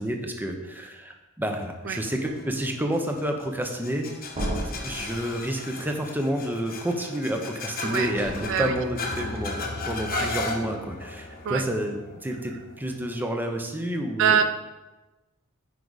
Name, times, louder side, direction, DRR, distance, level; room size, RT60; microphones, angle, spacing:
voice 1, 0.0-4.1 4.6-14.4, right 1 dB, 10° right, 3 dB, 0.8 m, -30 dB
sound 1, 1.9-13.3, left 3 dB, 40° left, 1.0 m, -36 dB
voice 2, 1.9-2.0 7.8-8.1 8.5-8.7 10.1-10.3 11.5-11.6 14.2-14.4, right 8 dB, 60° right, 9 dB, 0.4 m, -23 dB
sound 2, 4.3-5.2 8.1-8.4, equal, 30° right, 1.4 m, -31 dB
9.6 x 5.0 x 4.1 m, 1.1 s
head